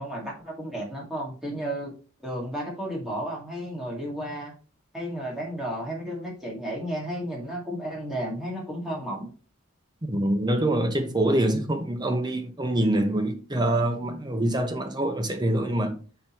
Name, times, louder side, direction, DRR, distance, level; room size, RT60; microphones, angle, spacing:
voice 1, 0.0-1.9 2.2-4.5 4.9-9.3, equal, ahead, 1.9 m, -33 dB
voice 2, 10.0-15.9, right 1 dB, 20° right, 0.8 m, -25 dB
5.2 x 4.5 x 4.2 m
head